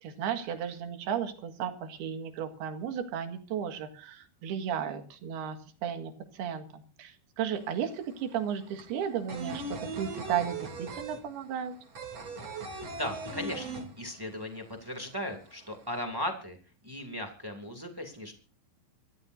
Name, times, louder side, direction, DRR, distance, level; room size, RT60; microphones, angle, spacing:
voice 1, 0.0-11.7, right 8 dB, 65° right, 6 dB, 3.5 m, -34 dB
sound 1, 7.5-7.6 7.9-14.5 14.7-14.8 15.2-16.0, right 2 dB, 40° right, 3.5 m, -39 dB
voice 2, 12.9-13.7 14.0-16.6 16.8-18.3, left 1 dB, 20° right, 3 dB, 0.6 m, -37 dB
26.5 x 14.0 x 2.7 m, 0.39 s
omnidirectional pair, 5.3 m